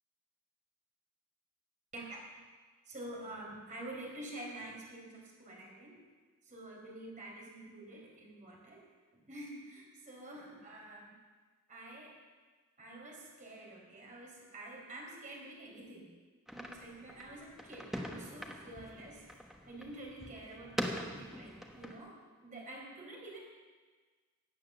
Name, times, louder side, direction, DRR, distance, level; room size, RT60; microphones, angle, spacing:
voice 1, 2.9-6.0 6.4-8.8 9.3-11.1 11.7-12.1 12.8-16.1 16.5-22.2 22.4-23.4, right 1 dB, 35° right, -2 dB, 4.4 m, -48 dB
sound 1, 16.5-22.0, equal, ahead, 1.3 m, -43 dB
16.5 x 8.9 x 7.1 m, 1.4 s
head